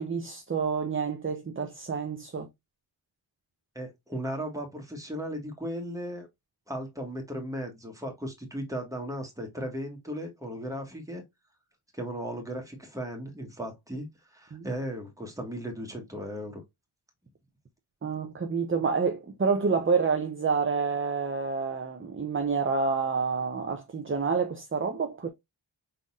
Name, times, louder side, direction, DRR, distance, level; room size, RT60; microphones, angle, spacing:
voice 1, 0.0-2.5 14.5-14.6 18.0-25.3, right 5 dB, 25° right, 0.6 m, -28 dB
voice 2, 3.7-6.3 6.7-11.2 11.9-16.6, equal, 5° right, 1.5 m, -36 dB
5.6 x 3.9 x 2.4 m
wide cardioid pair, 115°, 50 cm